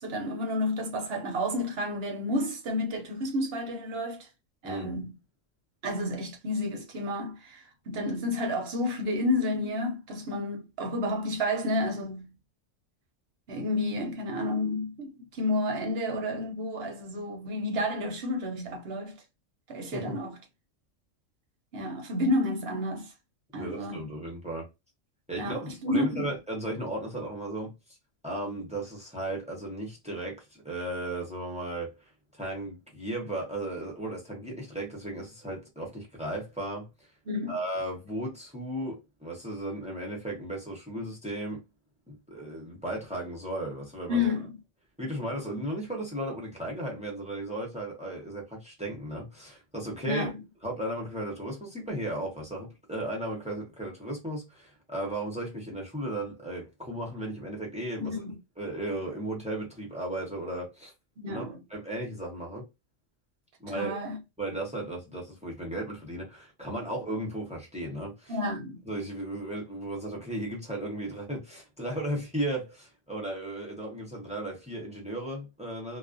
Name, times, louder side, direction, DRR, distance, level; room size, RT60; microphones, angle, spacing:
voice 1, 0.0-4.3 4.6-5.1 5.8-12.3 13.5-19.2 19.7-20.4 21.7-23.1 23.5-24.0 25.4-26.3 37.3-37.6 44.1-44.6 50.0-50.4 58.0-58.3 61.2-61.6 63.7-64.2 68.3-68.8, left 1 dB, 60° right, 0.8 m, -30 dB
voice 2, 4.6-4.9 19.9-20.2 23.5-24.7 25.3-27.7 28.2-32.0 32.3-36.9 37.5-41.6 42.1-44.3 45.0-50.3 50.6-58.2 58.6-60.9 61.3-62.7 63.6-64.0 64.4-68.4 68.8-76.0, right 1 dB, 10° right, 0.5 m, -35 dB
2.4 x 2.1 x 2.4 m
omnidirectional pair, 1.3 m